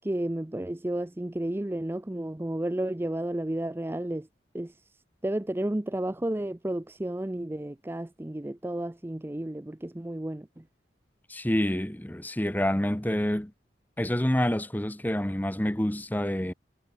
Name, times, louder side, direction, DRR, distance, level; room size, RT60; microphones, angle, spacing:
voice 1, 0.0-4.3 4.5-4.7 5.2-10.6, right 1 dB, 15° right, 0.5 m, -32 dB
voice 2, 11.3-13.5 14.0-16.5, left 1 dB, 10° left, 0.9 m, -27 dB
head